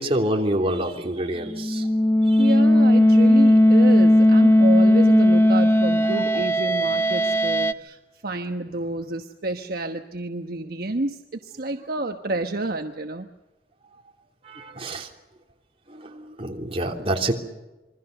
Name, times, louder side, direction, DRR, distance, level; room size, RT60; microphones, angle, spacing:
voice 1, 0.0-1.9 2.3-2.5 14.4-15.1 15.9-17.3, right 1 dB, 35° right, 1 dB, 3.3 m, -27 dB
sound 1, 1.4-7.7, left 1 dB, 15° left, 0.8 m, -17 dB
voice 2, 2.4-13.3, right 2 dB, 60° right, 5 dB, 1.2 m, -29 dB
27.5 x 23.0 x 6.8 m, 1.0 s
head